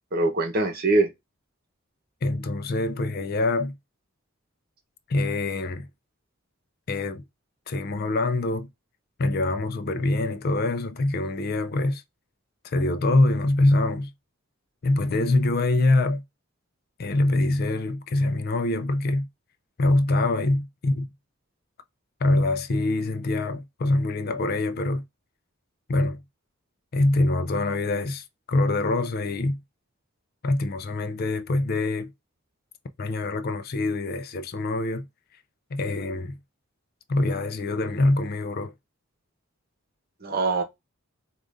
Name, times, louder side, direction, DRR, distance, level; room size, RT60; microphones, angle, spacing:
voice 1, 0.1-1.1 40.2-40.6, right 2 dB, 45° right, 0.9 m, -23 dB
voice 2, 2.2-3.8 5.1-5.9 6.9-7.2 7.7-8.7 9.2-12.0 12.6-14.1 14.8-16.2 17.0-19.3 19.8-21.1 22.2-25.0 25.9-26.2 26.9-29.6 30.4-32.1 33.0-35.1 35.7-36.4 37.1-38.7, left 2 dB, 50° left, 0.4 m, -24 dB
4.9 x 2.5 x 2.5 m
head